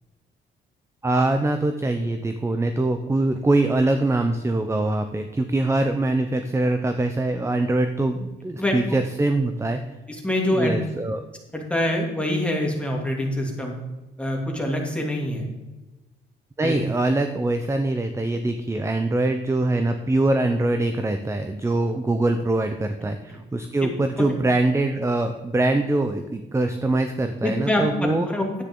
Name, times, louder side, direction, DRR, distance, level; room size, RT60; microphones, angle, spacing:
voice 1, 1.0-9.8 10.5-11.2 16.6-28.3, right 2 dB, 15° right, 7 dB, 0.7 m, -23 dB
voice 2, 10.1-10.8 11.5-13.7 14.2-15.5 16.6-16.8 23.8-23.9 24.2-24.4 27.4-27.8 28.3-28.5, left 1 dB, 5° left, 0 dB, 2.8 m, -25 dB
10.0 x 9.1 x 3.8 m, 1.1 s
cardioid pair, 90°, 20 cm